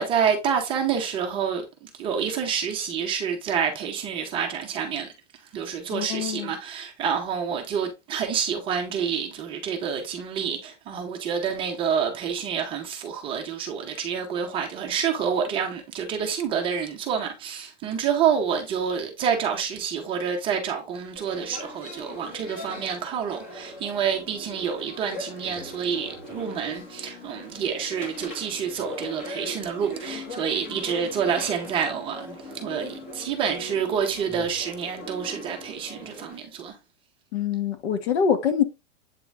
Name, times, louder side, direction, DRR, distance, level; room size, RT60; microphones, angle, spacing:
voice 1, 0.0-5.1 5.5-36.8, right 7 dB, 15° right, 0.7 m, -28 dB
voice 2, 5.9-6.5 37.3-38.6, left 7 dB, 60° left, 1.4 m, -24 dB
sound 1, 21.1-36.4, left 1 dB, 25° left, 2.5 m, -40 dB
8.2 x 3.7 x 3.3 m
supercardioid pair, 170°, 37 cm